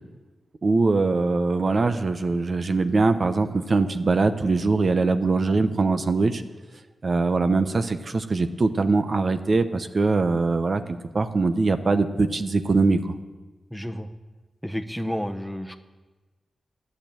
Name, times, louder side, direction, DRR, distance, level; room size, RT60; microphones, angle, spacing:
voice 1, 0.6-6.4 7.0-10.8 11.1-13.2, right 3 dB, 55° right, 9 dB, 0.9 m, -22 dB
voice 2, 13.7-14.1 14.6-15.8, equal, ahead, 7 dB, 1.1 m, -31 dB
12.0 x 6.8 x 9.0 m, 1.3 s
cardioid pair, 45°, 0 cm